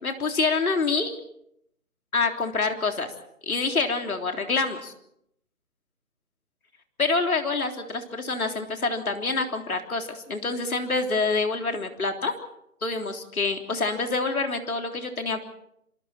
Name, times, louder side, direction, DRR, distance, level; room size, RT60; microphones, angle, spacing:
voice 1, 0.0-1.1 2.1-3.1 3.4-4.9 7.0-12.3 12.8-15.5, left 3 dB, 65° left, 4 dB, 3.6 m, -26 dB
27.0 x 27.0 x 4.4 m, 0.75 s
figure-of-eight pair, 160°, 45 cm